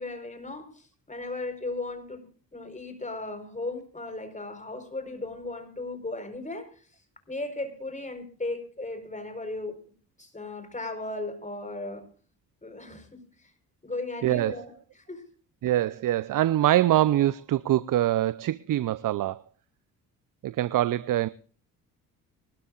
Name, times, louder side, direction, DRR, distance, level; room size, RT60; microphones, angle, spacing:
voice 1, 0.0-2.2 2.5-6.7 7.3-9.8 10.2-12.1 12.6-13.5 13.8-15.2, left 2 dB, 15° left, 4.6 m, -36 dB
voice 2, 14.2-14.6 15.6-19.4 20.4-21.3, right 13 dB, 45° right, 0.7 m, -24 dB
23.5 x 12.5 x 2.5 m
hypercardioid pair, 50°, 46 cm